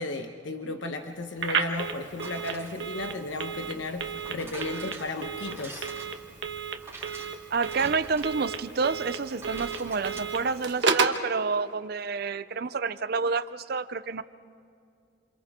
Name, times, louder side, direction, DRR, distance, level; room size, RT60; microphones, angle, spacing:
voice 1, 0.0-5.9, left 2 dB, 90° left, 5 dB, 1.1 m, -34 dB
Telephone, 1.4-11.2, right 5 dB, 75° right, 1.3 m, -32 dB
sound 1, 2.1-11.0, right 3 dB, 15° right, 4.2 m, -46 dB
voice 2, 7.5-14.2, right 4 dB, 55° right, 14 dB, 0.6 m, -29 dB
28.0 x 28.0 x 3.7 m, 2.3 s
head